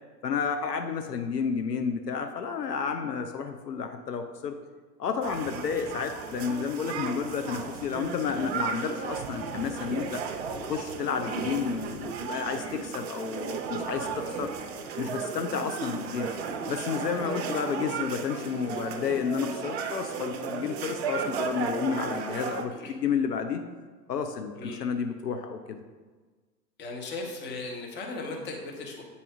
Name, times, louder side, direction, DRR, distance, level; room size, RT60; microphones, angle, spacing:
voice 1, 0.2-4.5 5.0-10.2 10.7-14.5 15.0-16.3 16.7-23.6 24.1-25.8, left 6 dB, 75° left, 6 dB, 0.6 m, -31 dB
sound 1, 5.2-22.6, right 5 dB, 40° right, 0.6 m, -34 dB
voice 2, 26.8-29.0, left 3 dB, 20° left, 1 dB, 1.0 m, -37 dB
7.9 x 4.2 x 3.5 m, 1.4 s
figure-of-eight pair, 95°, 49 cm